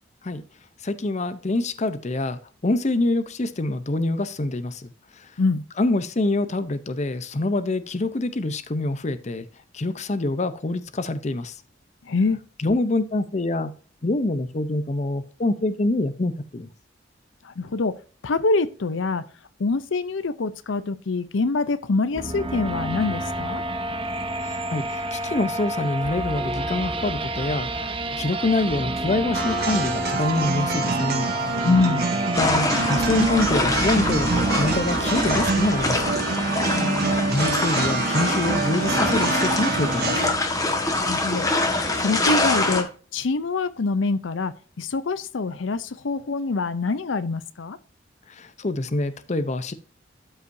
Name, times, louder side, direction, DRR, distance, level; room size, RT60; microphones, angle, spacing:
voice 1, 0.8-4.9 5.8-9.4 9.7-11.5 12.6-13.7 14.0-16.7 24.4-31.6 32.4-36.2 37.3-40.2 48.4-49.7, left 2 dB, 40° left, 0.7 m, -25 dB
voice 2, 12.1-12.4 17.4-17.9 18.2-19.2 19.6-23.6 31.6-32.0 36.7-37.0 41.0-41.5 41.9-42.9 43.1-47.8, left 3 dB, 85° left, 0.6 m, -25 dB
sound 1, 22.1-36.1, right 1 dB, 30° right, 0.9 m, -29 dB
sound 2, 29.3-40.3, right 3 dB, 55° right, 1.8 m, -26 dB
sound 3, 32.3-42.8, left 2 dB, 20° left, 1.4 m, -25 dB
12.5 x 5.6 x 2.7 m
head